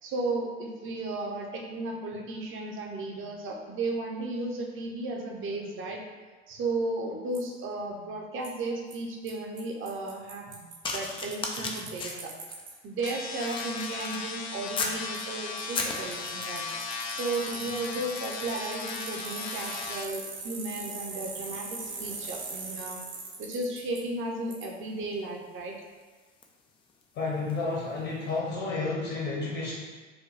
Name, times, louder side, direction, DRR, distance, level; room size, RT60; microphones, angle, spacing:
voice 1, 0.0-6.0 6.5-10.6 10.9-12.3 12.8-16.7 17.1-23.0 23.4-25.7, right 2 dB, 35° right, 0 dB, 0.8 m, -34 dB
Bicycle, 7.3-7.4 8.4-8.5 8.9-9.0 9.3-9.4 9.6-9.7 9.9-12.7 13.1-13.2 15.1-15.2 15.6-24.0 24.5-24.6, right 4 dB, 65° right, 0.9 m, -41 dB
sound 1, 10.8-15.1 15.5-16.7 17.5-17.7 18.0-27.7 28.4-28.6, left 4 dB, 15° left, 0.3 m, -40 dB
sound 2, 13.0-20.0, left 4 dB, 60° left, 0.6 m, -37 dB
voice 2, 27.1-29.7, left 3 dB, 45° left, -4 dB, 1.0 m, -31 dB
4.9 x 2.2 x 3.2 m, 1.3 s
figure-of-eight pair, 70°, 36 cm